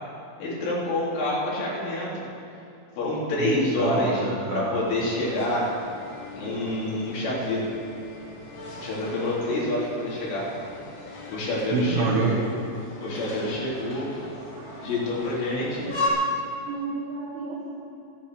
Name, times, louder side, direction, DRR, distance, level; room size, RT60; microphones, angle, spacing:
voice 1, 0.4-2.2 3.0-4.3 4.5-5.7 6.3-7.7 8.8-10.5 11.3-12.4 13.0-14.1 14.8-15.9, left 1 dB, 75° left, -7 dB, 5.8 m, -27 dB
voice 2, 3.4-4.8 6.5-6.7 11.7-12.3 14.6-14.9 15.9-17.7, right 4 dB, 85° right, -3 dB, 3.9 m, -29 dB
sound 1, 4.7-16.1, left 2 dB, 45° left, 3.0 m, -38 dB
24.5 x 8.5 x 4.8 m, 2.7 s
omnidirectional pair, 5.7 m